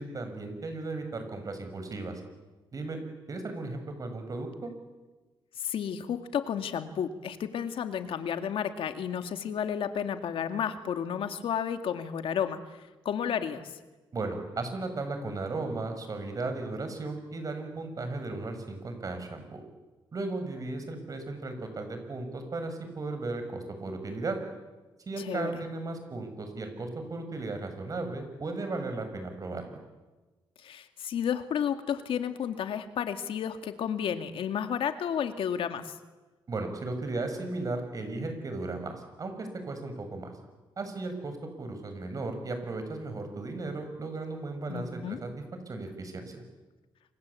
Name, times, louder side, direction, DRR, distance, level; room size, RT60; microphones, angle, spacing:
voice 1, 0.0-2.2 2.7-3.0 3.3-4.7 14.1-19.6 20.1-24.4 25.1-29.8 36.5-40.3 40.8-45.3 45.7-46.4, right 3 dB, 40° right, 7 dB, 6.6 m, -36 dB
voice 2, 5.6-13.8 25.2-25.6 30.6-36.0 44.7-45.2, left 8 dB, 80° left, 8 dB, 2.2 m, -32 dB
28.0 x 25.5 x 8.5 m, 1.2 s
cardioid pair, 110°, 9 cm